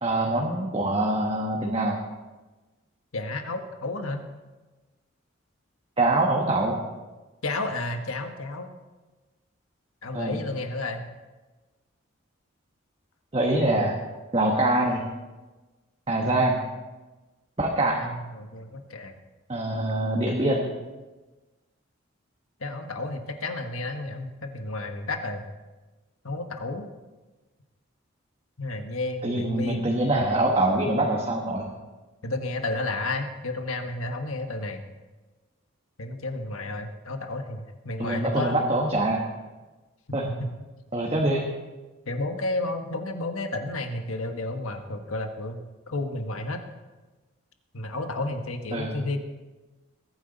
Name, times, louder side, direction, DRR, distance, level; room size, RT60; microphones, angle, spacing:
voice 1, 0.0-2.0 6.0-6.8 10.1-10.4 13.3-14.0 14.3-15.0 16.1-16.6 17.6-18.0 19.5-20.7 29.2-31.7 38.0-39.2 40.1-40.2 40.9-41.5 48.7-49.0, right 1 dB, 30° right, -1 dB, 1.3 m, -24 dB
voice 2, 3.1-4.2 7.4-8.7 10.0-11.1 17.9-19.1 22.6-25.4 26.2-26.9 28.6-29.9 32.2-34.8 36.0-38.6 40.1-40.5 42.0-46.6 47.7-49.2, left 2 dB, 90° left, 5 dB, 1.4 m, -32 dB
21.5 x 9.5 x 4.1 m, 1.2 s
head